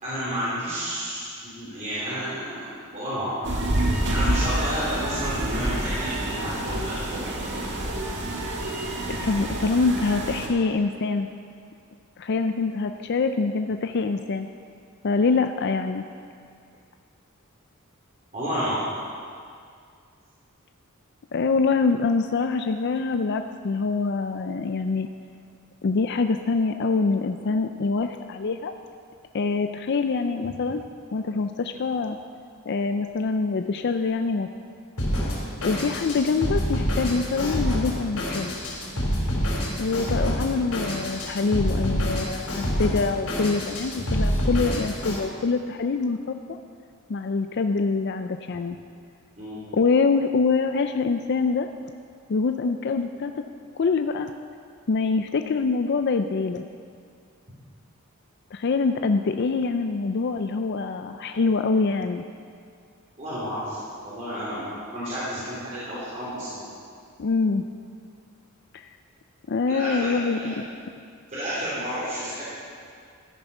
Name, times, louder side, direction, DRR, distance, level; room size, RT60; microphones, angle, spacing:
voice 1, 0.0-3.3 4.1-7.2 7.5-7.6 18.3-18.8 49.4-49.6 63.2-66.6 69.7-70.5 71.3-72.4, equal, 35° right, -11 dB, 3.5 m, -31 dB
sound 1, 3.4-10.5, right 1 dB, 55° right, 1.7 m, -28 dB
voice 2, 9.2-11.3 12.2-14.5 15.0-16.0 21.3-25.1 25.8-28.7 29.3-30.8 31.1-32.2 32.7-34.5 35.6-38.5 39.8-46.6 47.1-48.8 49.7-51.7 52.3-53.4 53.8-54.3 54.9-56.6 58.5-62.2 67.2-67.6 68.7-68.8 69.5-70.5, left 4 dB, 50° left, 7 dB, 0.4 m, -25 dB
Drum kit, 35.0-45.2, equal, 85° left, 3.4 m, -27 dB
13.5 x 10.0 x 5.5 m, 2.2 s
head